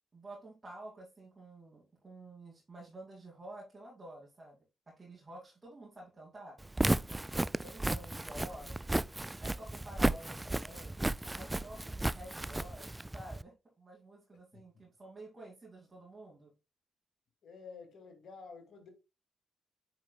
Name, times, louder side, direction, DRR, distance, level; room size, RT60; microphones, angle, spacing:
voice 1, 0.1-4.6 4.9-6.6 7.1-9.1 9.4-11.0 11.3-16.5, right 1 dB, 35° right, 2.6 m, -51 dB
Walk footsteps, 6.6-13.4, right 1 dB, 15° right, 0.4 m, -34 dB
voice 2, 17.4-18.9, left 5 dB, 55° left, 2.4 m, -50 dB
8.9 x 4.8 x 2.3 m
hypercardioid pair, 40°, 0 cm